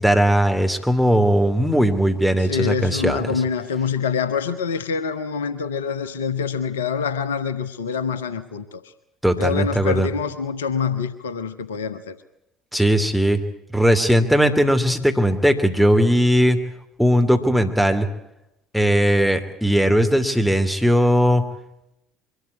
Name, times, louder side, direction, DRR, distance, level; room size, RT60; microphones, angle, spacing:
voice 1, 0.0-3.3 9.2-10.1 12.7-13.4 13.7-16.6 17.0-18.1 18.7-21.4, equal, ahead, 7 dB, 2.6 m, -18 dB
voice 2, 2.4-8.8 9.4-12.1, left 6 dB, 75° left, 13 dB, 1.0 m, -25 dB
23.5 x 13.0 x 9.7 m, 0.87 s
figure-of-eight pair, 55°, 0 cm